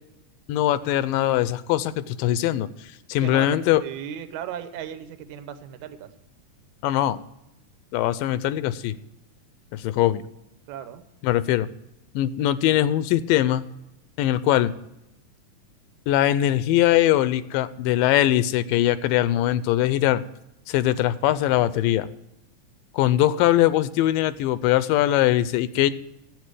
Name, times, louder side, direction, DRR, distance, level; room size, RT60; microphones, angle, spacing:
voice 1, 0.5-2.7 3.1-3.8 6.8-7.2 7.9-9.0 9.7-10.2 11.2-11.7 12.2-13.6 14.2-14.7 16.1-20.2 20.7-22.1 22.9-25.9, left 13 dB, 85° left, 15 dB, 2.2 m, -21 dB
voice 2, 3.2-6.1 10.7-11.0, right 9 dB, 70° right, 10 dB, 2.0 m, -36 dB
12.5 x 8.6 x 4.9 m, 0.86 s
omnidirectional pair, 3.9 m